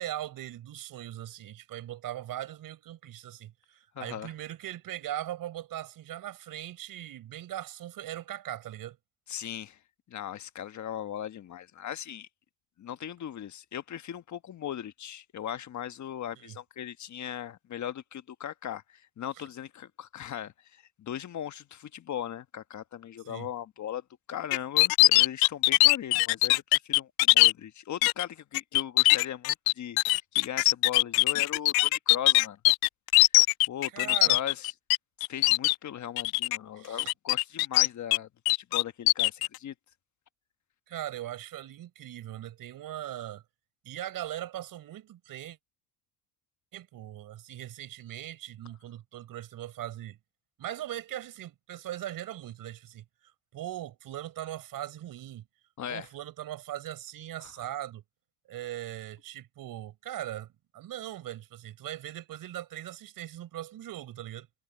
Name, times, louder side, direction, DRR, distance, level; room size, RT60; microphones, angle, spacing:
voice 1, 0.0-9.0 16.4-16.6 19.4-19.5 23.3-23.5 33.9-34.4 36.8-37.1 40.9-43.4 43.8-45.6 46.7-50.2 50.6-55.4 55.9-58.0 58.5-60.5 60.7-64.5, right 13 dB, 70° right, 5.2 m, -40 dB
voice 2, 3.9-4.3 9.3-9.8 10.1-12.3 12.8-24.0 24.3-32.6 33.7-34.7 35.3-38.3 38.6-39.7 55.8-56.1 57.4-57.5, left 10 dB, 50° left, 1.3 m, -38 dB
sound 1, 24.5-27.5 28.0-28.2 28.5-35.0 35.2-35.7 36.2-36.6 37.0-38.2 38.5-39.5, left 23 dB, 85° left, 0.5 m, -21 dB
cardioid pair, 85°, 36 cm